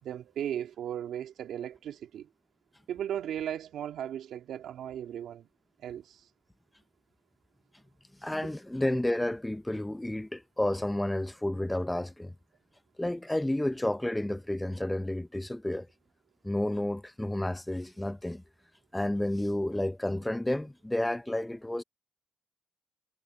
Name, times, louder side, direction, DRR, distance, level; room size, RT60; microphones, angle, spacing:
voice 1, 0.0-2.3 2.9-5.5 5.8-6.3 8.4-8.5, right 10 dB, 80° right, 2.7 m, -36 dB
voice 2, 8.2-12.3 13.0-15.9 16.4-18.4 18.9-21.8, left 1 dB, 10° left, 0.8 m, -31 dB
cardioid pair, 75°, 0 cm